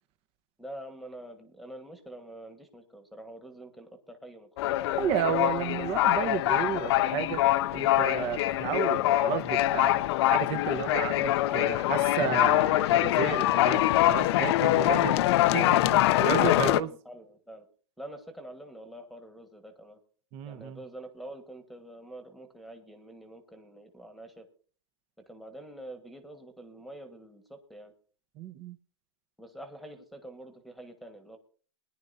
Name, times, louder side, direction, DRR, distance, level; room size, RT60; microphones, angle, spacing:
voice 1, 0.6-5.1 14.7-15.5 16.6-17.6 18.0-20.0 20.4-24.5 25.3-27.9 29.4-31.4, right 1 dB, ahead, 1.4 m, -46 dB
sound 1, 4.6-16.8, left 15 dB, 55° left, 0.5 m, -24 dB
voice 2, 5.0-7.4 7.7-16.9 20.3-20.8 28.4-28.8, right 9 dB, 35° right, 1.0 m, -32 dB
21.0 x 10.5 x 2.7 m
hypercardioid pair, 135°, 16 cm